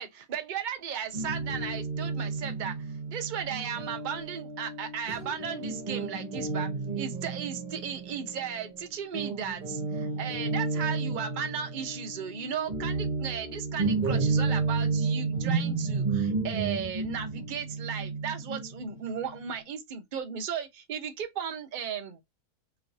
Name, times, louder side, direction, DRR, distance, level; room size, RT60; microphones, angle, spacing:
voice 1, 0.0-2.8 3.1-22.2, right 7 dB, 55° right, 0.5 m, -35 dB
Guitar, 1.1-8.8 9.1-19.6, right 4 dB, 35° right, 1.0 m, -32 dB
3.0 x 2.9 x 2.6 m
omnidirectional pair, 1.7 m